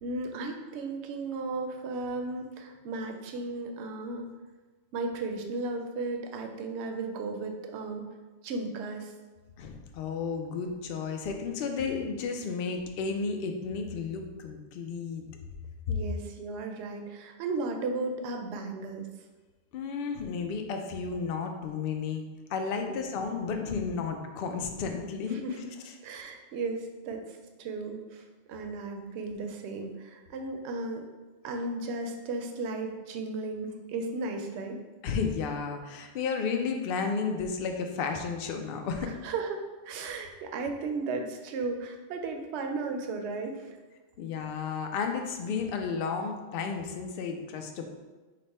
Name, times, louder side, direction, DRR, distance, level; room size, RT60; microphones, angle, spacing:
voice 1, 0.0-4.3 4.9-8.0 8.4-9.1 15.9-19.1 22.9-23.0 25.2-31.1 31.4-34.8 39.0-43.8, right 3 dB, 70° right, 4 dB, 0.8 m, -35 dB
voice 2, 9.6-15.3 15.9-16.0 19.7-25.4 35.0-39.1 44.2-47.8, left 5 dB, 60° left, 4 dB, 0.6 m, -32 dB
5.3 x 2.1 x 4.1 m, 1.3 s
omnidirectional pair, 1.2 m